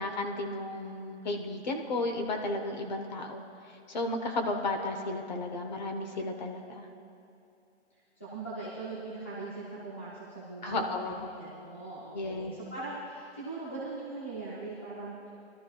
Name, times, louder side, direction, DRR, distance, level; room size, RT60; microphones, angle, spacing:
voice 1, 0.0-3.4 3.9-6.8 10.6-11.3 12.1-12.5, left 2 dB, 35° left, 4 dB, 1.0 m, -33 dB
voice 2, 8.2-15.3, right 3 dB, 10° left, -8 dB, 0.5 m, -40 dB
21.0 x 12.5 x 2.3 m, 2.7 s
hypercardioid pair, 170°, 36 cm